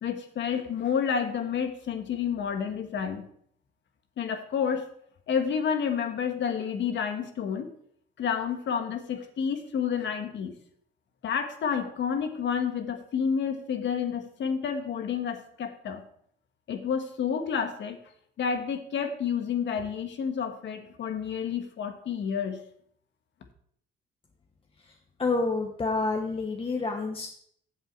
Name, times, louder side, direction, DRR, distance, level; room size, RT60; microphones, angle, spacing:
voice 1, 0.0-3.3 4.2-4.9 5.3-7.7 8.2-10.5 11.2-16.0 16.7-18.0 18.4-22.6, left 7 dB, 65° left, 7 dB, 1.5 m, -30 dB
voice 2, 24.8-27.3, left 3 dB, 25° left, 2 dB, 1.0 m, -29 dB
8.7 x 7.6 x 4.5 m, 0.64 s
cardioid pair, 90°, 20 cm